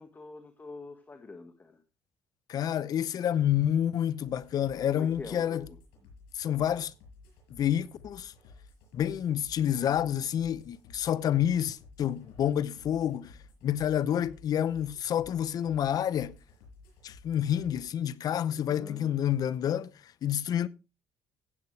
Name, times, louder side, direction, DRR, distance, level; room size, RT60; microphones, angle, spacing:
voice 1, 0.0-1.8 4.9-5.8 18.5-19.1, left 3 dB, 25° left, 1.6 m, -45 dB
voice 2, 2.5-5.6 6.3-6.9 7.5-8.3 8.9-13.4 13.6-16.4 17.0-19.9 20.2-20.7, left 10 dB, 55° left, 0.7 m, -28 dB
sound 1, 4.2-17.8, left 3 dB, 90° left, 6.8 m, -55 dB
15.5 x 8.1 x 3.2 m
cardioid pair, 85°, 7 cm